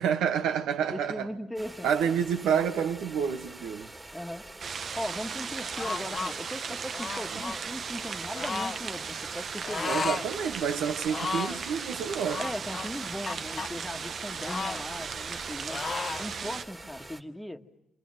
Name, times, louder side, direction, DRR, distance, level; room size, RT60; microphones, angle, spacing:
voice 1, 0.0-1.3 1.8-3.9 9.9-12.4, right 7 dB, 85° right, 1.4 m, -28 dB
voice 2, 0.9-2.2 4.1-4.5 5.0-10.1 12.4-15.8 16.2-17.6, equal, 5° left, 1.6 m, -38 dB
sound 1, 1.5-17.2, right 2 dB, 20° right, 2.4 m, -46 dB
sound 2, 4.6-16.7, right 6 dB, 50° right, 1.0 m, -37 dB
sound 3, 5.8-6.3 6.9-7.6 8.3-8.8 9.6-10.3 10.6-10.7 11.1-11.6 12.3-13.7 14.4-15.4 15.7-16.3, left 4 dB, 35° left, 0.9 m, -34 dB
27.5 x 27.5 x 7.7 m
cardioid pair, 90°, 0 cm